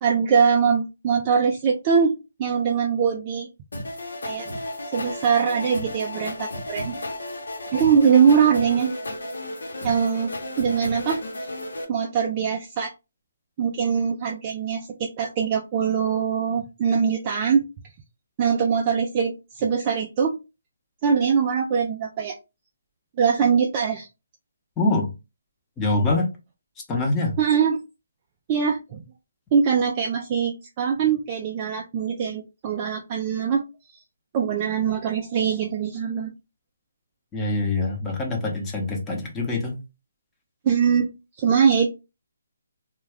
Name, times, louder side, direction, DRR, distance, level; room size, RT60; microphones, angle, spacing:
voice 1, 0.0-3.5 4.2-4.5 4.9-6.9 7.7-8.9 9.8-10.3 10.6-11.2 11.9-12.9 13.6-17.6 18.4-20.4 21.0-22.4 23.2-24.1 27.4-27.8 28.5-29.0 29.5-33.6 34.3-36.3 40.6-41.1 41.4-41.9, right 6 dB, 30° right, 1 dB, 0.3 m, -22 dB
sound 1, 3.7-11.8, left 1 dB, 80° left, 0.9 m, -33 dB
voice 2, 24.8-25.1 25.8-26.3 26.9-27.4 37.3-39.8, left 2 dB, 15° left, 0 dB, 0.7 m, -24 dB
2.3 x 2.2 x 3.3 m, 0.27 s
hypercardioid pair, 160°, 0 cm